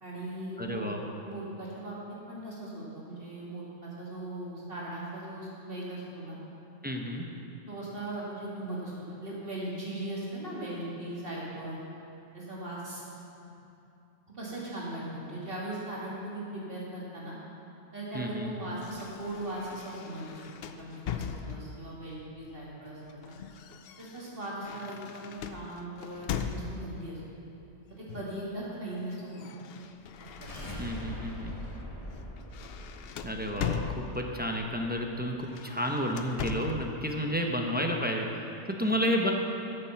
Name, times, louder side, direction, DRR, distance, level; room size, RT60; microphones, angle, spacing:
voice 1, 0.0-0.8 1.2-6.4 7.3-7.4 7.7-8.9 9.2-11.8 12.3-13.0 14.3-17.4 17.9-20.4 20.8-23.2 24.0-27.2 28.0-29.4 30.2-30.8 38.8-38.9, right 1 dB, 45° right, -6 dB, 2.6 m, -39 dB
voice 2, 0.6-1.1 6.8-7.3 18.1-18.5 30.8-31.5 33.2-39.3, equal, 10° right, 1 dB, 0.6 m, -31 dB
sound 1, 18.8-21.9 22.9-27.1 28.1-28.5 28.8-31.1 31.5-31.7 32.1-34.5 35.4-36.9, left 7 dB, 60° left, 0.7 m, -39 dB
sound 2, 30.1-35.2, left 1 dB, 30° left, 1.2 m, -43 dB
12.5 x 6.7 x 5.8 m, 2.8 s
omnidirectional pair, 1.3 m